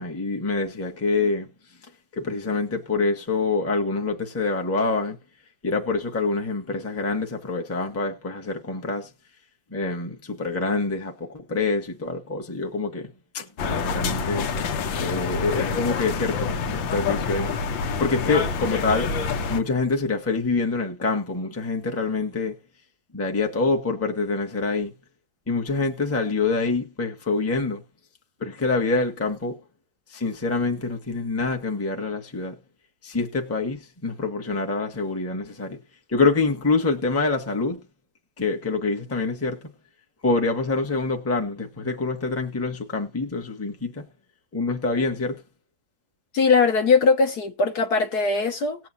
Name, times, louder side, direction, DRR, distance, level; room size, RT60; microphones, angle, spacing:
voice 1, 0.0-1.5 2.1-5.2 5.6-9.1 9.7-14.5 15.0-17.5 18.0-19.2 19.5-22.6 23.1-24.9 25.5-27.8 28.4-29.6 30.1-32.6 33.0-35.8 36.1-37.8 38.4-39.7 40.2-44.1 44.5-45.4, left 3 dB, 10° left, 1.0 m, -26 dB
sound 1, 13.6-19.6, left 5 dB, 75° left, 1.7 m, -27 dB
voice 2, 46.3-48.8, left 4 dB, 60° left, 1.3 m, -20 dB
19.0 x 7.4 x 2.7 m
omnidirectional pair, 2.1 m